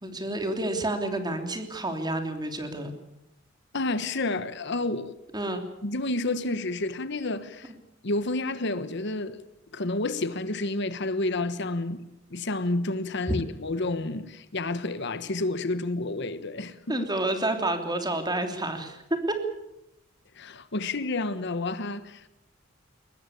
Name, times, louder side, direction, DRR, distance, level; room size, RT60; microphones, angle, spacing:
voice 1, 0.0-2.9 5.3-5.6 16.9-19.0 19.3-19.4, right 2 dB, 20° right, 3.2 m, -29 dB
voice 2, 3.7-5.1 5.8-7.7 8.0-9.4 9.7-17.1 20.3-22.3, left 2 dB, 60° left, 1.2 m, -30 dB
22.5 x 20.0 x 8.4 m
head